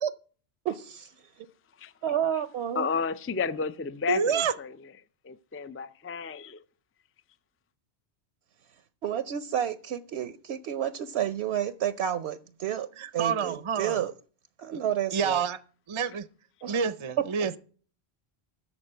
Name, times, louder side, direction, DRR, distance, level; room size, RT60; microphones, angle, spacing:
voice 1, 0.6-1.1 2.0-2.9 9.0-12.9 13.1-14.1 14.6-15.4 16.6-16.8, right 10 dB, 75° right, 0.9 m, -30 dB
voice 2, 2.7-4.7 5.2-6.6, left 5 dB, 20° left, 0.3 m, -32 dB
voice 3, 4.1-4.5 13.0-14.0 14.7-14.8 15.1-15.6 15.9-16.3 16.7-17.6, right 6 dB, 35° right, 0.6 m, -28 dB
13.5 x 5.1 x 7.6 m
omnidirectional pair, 1.1 m